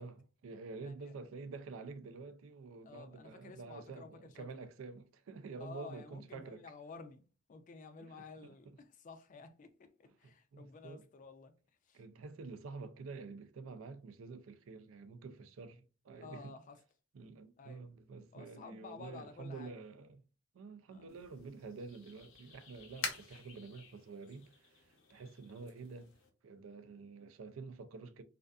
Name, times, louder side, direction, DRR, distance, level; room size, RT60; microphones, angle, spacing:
voice 1, 0.0-6.6 8.0-8.5 10.0-11.1 11.9-16.6 17.1-20.2 20.5-26.1 26.4-28.2, right 4 dB, 80° right, 0.4 m, -49 dB
voice 2, 0.8-1.1 2.8-4.6 5.6-7.2 7.5-11.5 11.9-12.0 16.2-16.8 17.6-17.8 18.3-19.8 20.9-21.1, left 4 dB, 40° left, 0.3 m, -52 dB
sound 1, 21.1-26.3, left 4 dB, 85° left, 0.7 m, -48 dB
2.4 x 2.4 x 2.2 m
head